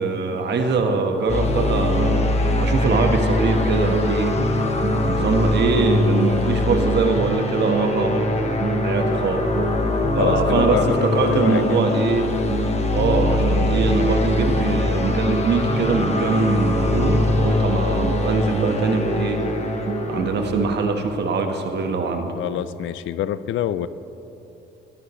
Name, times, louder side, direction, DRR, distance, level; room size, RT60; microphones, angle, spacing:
voice 1, 0.0-4.3 5.1-8.3 8.8-9.5 10.1-12.3 12.9-19.4 20.0-22.3, right 4 dB, 60° right, 4 dB, 1.4 m, -22 dB
sound 1, 1.3-20.8, left 2 dB, 35° left, 1.3 m, -23 dB
sound 2, 1.5-20.8, right 5 dB, 40° right, 0.6 m, -30 dB
voice 2, 10.2-11.8 22.4-23.9, left 11 dB, 75° left, 15 dB, 0.5 m, -26 dB
16.5 x 12.5 x 3.2 m, 2.8 s
cardioid pair, 90°, 20 cm